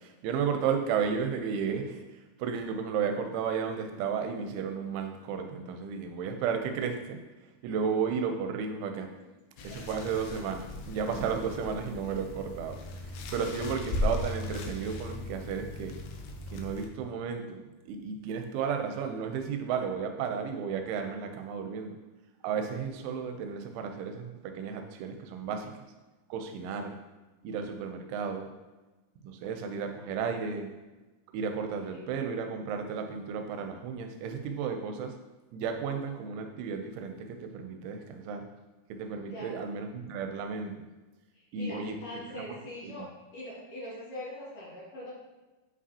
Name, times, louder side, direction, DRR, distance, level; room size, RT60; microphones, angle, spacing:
voice 1, 0.0-2.0 2.4-7.2 7.6-9.1 9.6-16.0 16.5-22.0 22.4-25.8 26.3-26.9 27.4-28.5 29.2-30.7 31.3-35.2 35.5-38.5 38.9-40.7 41.5-42.0 42.3-43.1, right 6 dB, 85° right, 5 dB, 2.9 m, -33 dB
sound 1, 9.6-16.9, left 2 dB, 85° left, 2.3 m, -37 dB
voice 2, 31.7-32.0 39.2-39.5 41.3-43.1 43.3-45.1, left 1 dB, 60° left, -10 dB, 1.5 m, -42 dB
8.3 x 5.0 x 2.7 m, 1.2 s
omnidirectional pair, 5.5 m